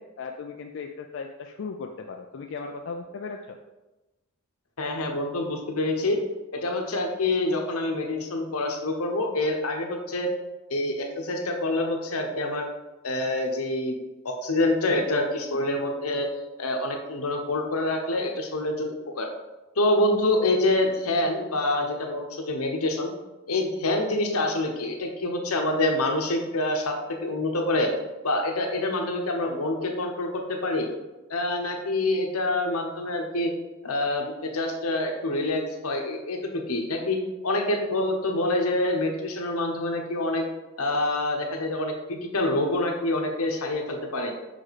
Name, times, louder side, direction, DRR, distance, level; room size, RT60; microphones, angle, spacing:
voice 1, 0.0-3.6, left 4 dB, 60° left, 3 dB, 0.4 m, -37 dB
voice 2, 4.8-6.2 6.5-10.3 10.7-12.7 13.0-16.3 16.6-19.3 19.8-23.1 23.5-27.9 28.2-30.9 31.3-33.5 33.8-37.2 37.4-40.4 40.8-44.3, left 2 dB, 85° left, 2 dB, 1.1 m, -26 dB
6.1 x 5.0 x 4.1 m, 1.1 s
head